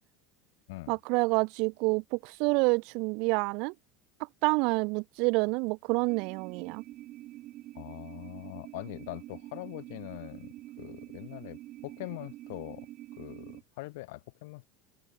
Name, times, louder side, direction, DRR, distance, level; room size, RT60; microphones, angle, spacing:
voice 1, 0.9-3.7 4.4-6.8, right 30 dB, 65° right, 1.1 m, -28 dB
sound 1, 6.1-13.6, right 15 dB, 50° right, 2.3 m, -46 dB
voice 2, 7.7-14.7, left 22 dB, 80° left, 3.1 m, -43 dB
open air
supercardioid pair, 130°, 0 cm